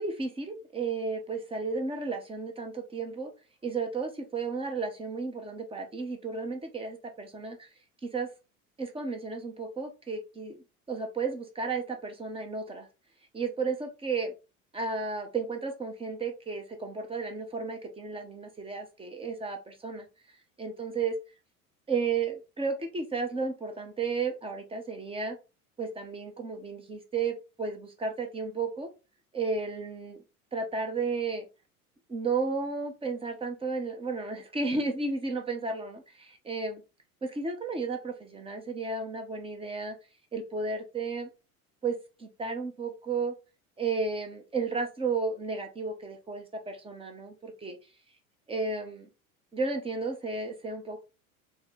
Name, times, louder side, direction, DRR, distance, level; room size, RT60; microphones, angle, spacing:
voice 1, 0.0-3.3 3.6-7.7 8.0-8.3 8.8-10.6 10.9-12.9 13.3-14.3 14.7-20.1 20.6-21.2 21.9-25.4 25.8-28.9 29.3-30.2 30.5-31.5 32.1-36.8 37.2-40.0 40.3-41.3 41.8-43.3 43.8-47.8 48.5-49.1 49.5-51.0, right 4 dB, 15° right, 4 dB, 0.7 m, -33 dB
4.1 x 2.0 x 3.9 m, 0.30 s
figure-of-eight pair, 75°, 44 cm